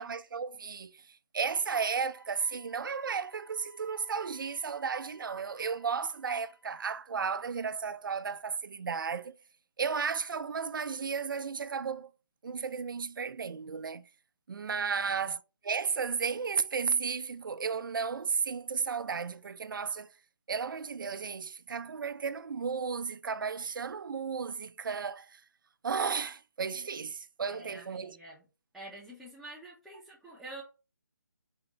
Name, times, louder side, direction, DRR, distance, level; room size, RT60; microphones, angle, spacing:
voice 1, 0.0-9.3 9.8-12.1 12.4-14.0 14.5-20.1 20.5-25.4 25.8-28.2, right 6 dB, 70° right, 0.4 m, -34 dB
Wind instrument woodwind instrument, 2.1-6.9, left 2 dB, 80° left, 1.1 m, -61 dB
voice 2, 14.9-15.3 27.5-28.4 28.7-30.6, right 1 dB, ahead, 0.4 m, -47 dB
3.4 x 2.3 x 2.9 m
figure-of-eight pair, 155°, 11 cm